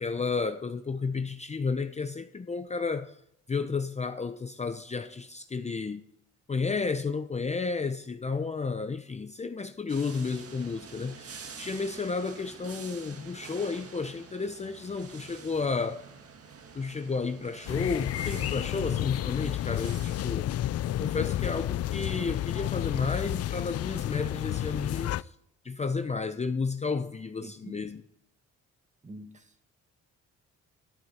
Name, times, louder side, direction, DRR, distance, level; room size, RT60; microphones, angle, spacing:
voice 1, 0.0-3.2 3.5-6.0 6.5-16.1 16.7-20.5 21.0-25.3 25.6-28.0, left 4 dB, 20° left, 0.7 m, -32 dB
sound 1, 9.9-20.4, right 5 dB, 50° right, 1.7 m, -47 dB
sound 2, 17.7-25.2, left 13 dB, 55° left, 0.4 m, -31 dB
voice 2, 27.4-27.8 29.0-29.6, right 1 dB, 25° right, 1.9 m, -46 dB
12.5 x 11.0 x 4.3 m
cardioid pair, 90°, 30 cm